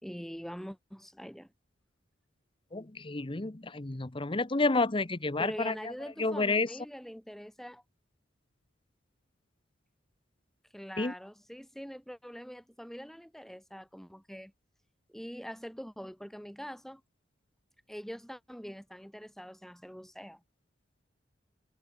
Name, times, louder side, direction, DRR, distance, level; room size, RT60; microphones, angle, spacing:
voice 1, 0.0-1.5 5.4-7.8 10.7-14.5 15.1-17.0 17.9-20.4, equal, ahead, 4.5 m, -44 dB
voice 2, 2.7-5.7 6.2-6.7 11.0-11.1, left 3 dB, 25° left, 0.9 m, -30 dB
head